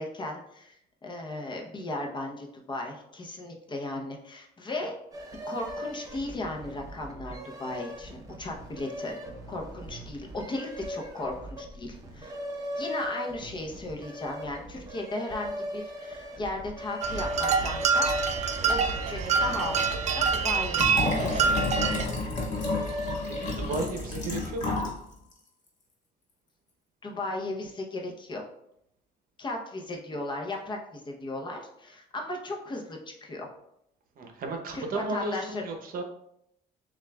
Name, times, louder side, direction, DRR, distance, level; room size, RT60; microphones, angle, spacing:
voice 1, 0.0-4.9 5.4-9.2 9.5-12.3 12.8-18.1 18.7-21.5 27.0-28.5 29.4-33.5 34.7-35.6, left 2 dB, 25° left, 1 dB, 0.7 m, -36 dB
sound 1, 5.1-24.5, equal, 20° right, 0.8 m, -39 dB
sound 2, 17.0-22.1, right 5 dB, 40° right, 0.4 m, -26 dB
Liquid, 20.7-25.0 25.3-25.4, left 3 dB, 45° left, 1.2 m, -31 dB
voice 2, 23.3-24.9 34.2-36.0, right 2 dB, 55° right, 3 dB, 0.8 m, -34 dB
7.1 x 2.4 x 2.3 m, 0.77 s
cardioid pair, 110°, 17 cm